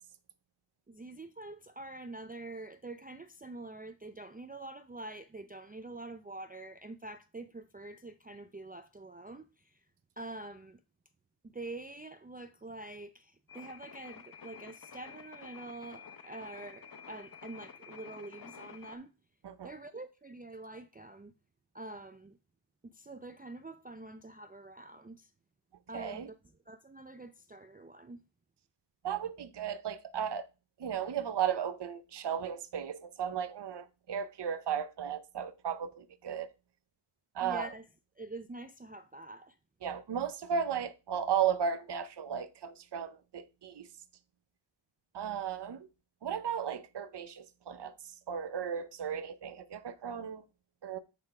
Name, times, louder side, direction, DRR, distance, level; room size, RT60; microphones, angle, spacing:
voice 1, 0.9-9.8 10.2-10.8 11.4-19.1 19.6-21.3 21.7-22.4 22.8-25.3 25.9-26.4 26.7-28.2 37.4-37.9 38.2-39.6, right 2 dB, 20° right, 0.4 m, -46 dB
sound 1, 13.5-19.0, left 6 dB, 45° left, 0.8 m, -51 dB
voice 2, 25.9-26.3 29.0-30.5 30.8-36.5 37.3-37.7 39.8-43.9 45.1-45.9 46.2-47.9 48.3-50.4 50.8-51.0, right 8 dB, 55° right, 0.7 m, -35 dB
8.7 x 3.5 x 4.8 m
cardioid pair, 40°, 50 cm